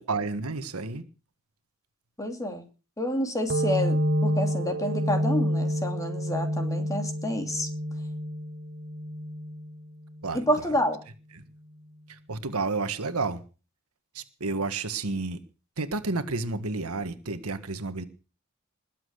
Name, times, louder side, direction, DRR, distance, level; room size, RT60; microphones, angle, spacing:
voice 1, 0.1-1.0 10.2-10.7 12.1-13.4 14.1-15.4 15.8-18.0, right 3 dB, 90° right, 1.6 m, -31 dB
voice 2, 2.2-2.6 3.0-4.0 4.2-7.7 10.3-11.0, equal, 15° left, 2.8 m, -28 dB
sound 1, 3.5-10.8, equal, 55° right, 1.0 m, -29 dB
20.5 x 7.7 x 6.5 m
head